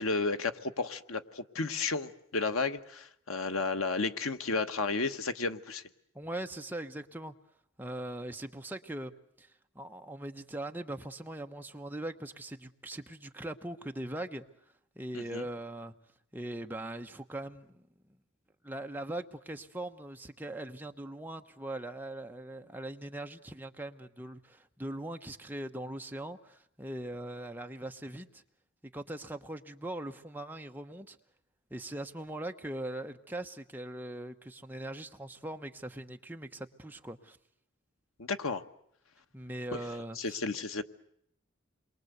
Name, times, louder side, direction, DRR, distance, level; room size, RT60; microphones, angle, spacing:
voice 1, 0.0-5.8 15.1-15.4 38.2-38.6 39.7-39.8 40.2-40.8, left 3 dB, 90° left, 1.3 m, -32 dB
voice 2, 6.1-7.3 7.8-14.4 14.9-15.9 16.3-17.9 18.6-28.4 28.8-31.2 31.7-37.4 39.3-40.4, right 1 dB, 10° right, 1.0 m, -41 dB
28.5 x 23.0 x 8.0 m
head